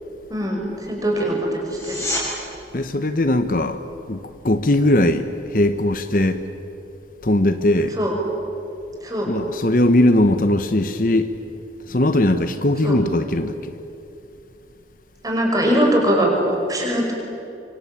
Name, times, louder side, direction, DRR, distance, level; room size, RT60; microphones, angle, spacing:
voice 1, 0.3-2.0 8.0-8.1 9.0-9.3 12.8-13.0 15.2-17.1, equal, 20° right, 0 dB, 5.7 m, -21 dB
sound 1, 1.6-2.3 13.6-13.7, left 1 dB, 15° left, 6.7 m, -27 dB
voice 2, 2.7-3.8 4.1-6.4 7.2-8.0 9.3-11.3 11.9-13.7, left 1 dB, 50° left, 9 dB, 1.0 m, -19 dB
25.0 x 25.0 x 8.9 m, 2.8 s
head